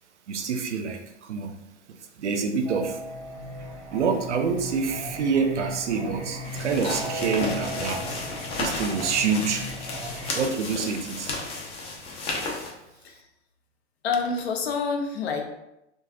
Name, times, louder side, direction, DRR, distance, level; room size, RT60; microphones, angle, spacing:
voice 1, 0.3-1.6 2.2-3.0 3.9-8.1 8.6-9.7 10.3-11.3, right 5 dB, 80° right, 7 dB, 0.5 m, -27 dB
Singing, 2.7-10.3, right 1 dB, 35° right, 0.9 m, -36 dB
sound 1, 6.4-12.7, left 3 dB, 20° left, 0.3 m, -33 dB
voice 2, 14.0-15.4, left 5 dB, 65° left, 3 dB, 0.6 m, -27 dB
3.2 x 2.2 x 2.3 m, 0.86 s
figure-of-eight pair, 95°, 35 cm